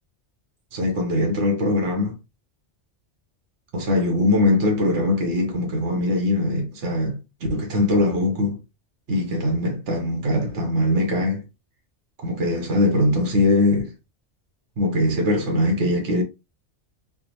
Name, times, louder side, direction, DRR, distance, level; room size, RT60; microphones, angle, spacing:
voice 1, 0.7-2.2 3.7-7.2 7.5-8.6 9.1-11.4 12.2-13.9 14.8-16.2, left 1 dB, 80° right, 1.2 m, -21 dB
3.4 x 2.1 x 2.9 m
omnidirectional pair, 1.2 m